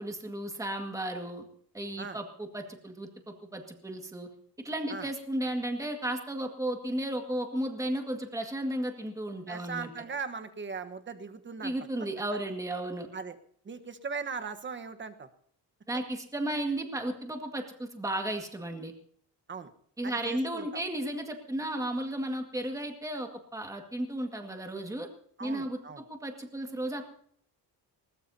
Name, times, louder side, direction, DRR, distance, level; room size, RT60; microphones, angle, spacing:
voice 1, 0.0-1.5 1.7-4.3 4.6-9.9 11.6-13.1 15.9-18.9 20.0-25.1 25.4-25.8 26.1-27.0, right 1 dB, 10° right, 4 dB, 1.8 m, -34 dB
voice 2, 9.5-11.7 13.1-13.4 13.6-15.3 19.5-19.7 20.0-20.8 25.4-26.0, right 5 dB, 30° right, 8 dB, 1.2 m, -39 dB
21.0 x 20.0 x 2.8 m, 0.63 s
cardioid pair, 165°, 40 cm